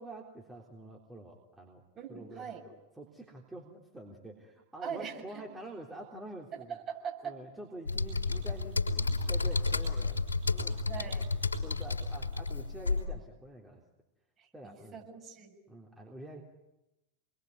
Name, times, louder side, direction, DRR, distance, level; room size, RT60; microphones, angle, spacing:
voice 1, 0.0-1.8 2.1-6.8 7.2-10.2 10.5-10.8 11.0-11.1 11.6-13.8 14.5-15.0 15.7-16.4, right 1 dB, 10° right, -1 dB, 3.5 m, -47 dB
voice 2, 1.9-2.6 4.8-5.4 6.5-7.4 10.9-11.3 14.4-15.6, right 7 dB, 30° right, 1 dB, 6.5 m, -41 dB
sound 1, 7.9-13.0, left 3 dB, 75° left, 4.1 m, -31 dB
28.5 x 22.0 x 9.7 m, 0.93 s
figure-of-eight pair, 90°, 0 cm